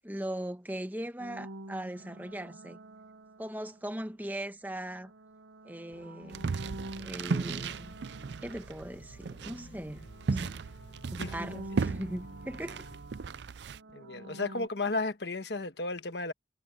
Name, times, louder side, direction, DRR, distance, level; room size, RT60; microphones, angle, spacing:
voice 1, 0.0-2.8 3.4-5.1 5.6-6.5 7.0-8.0 8.4-10.6 11.1-12.9, right 1 dB, 10° right, 1.3 m, -39 dB
sound 1, 1.2-4.1 4.8-9.6 9.8-14.7, right 1 dB, 85° right, 1.1 m, -48 dB
sound 2, 5.9-13.0, left 2 dB, 85° left, 1.5 m, -56 dB
sound 3, 6.3-13.8, right 4 dB, 65° right, 0.5 m, -36 dB
voice 2, 13.9-16.3, left 3 dB, 65° left, 1.3 m, -33 dB
head